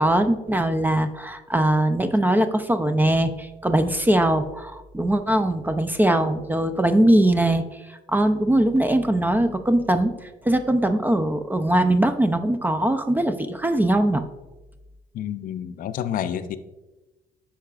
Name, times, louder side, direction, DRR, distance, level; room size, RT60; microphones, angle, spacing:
voice 1, 0.0-7.6 7.9-14.2, right 1 dB, 10° right, 9 dB, 0.4 m, -21 dB
voice 2, 15.1-16.6, left 9 dB, 55° left, 11 dB, 0.4 m, -29 dB
8.4 x 5.7 x 2.4 m, 1.1 s
cardioid pair, 110°, 17 cm